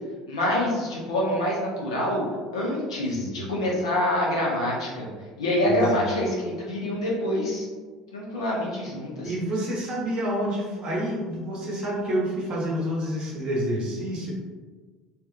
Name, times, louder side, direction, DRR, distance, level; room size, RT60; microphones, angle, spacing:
voice 1, 0.3-2.2 2.5-5.1 5.4-7.7 8.1-9.3, left 1 dB, 75° left, -4 dB, 0.7 m, -26 dB
voice 2, 3.1-3.4 5.7-6.2 9.2-14.3, equal, 40° right, -5 dB, 1.0 m, -28 dB
2.6 x 2.4 x 2.4 m, 1.4 s
figure-of-eight pair, 65°, 3 cm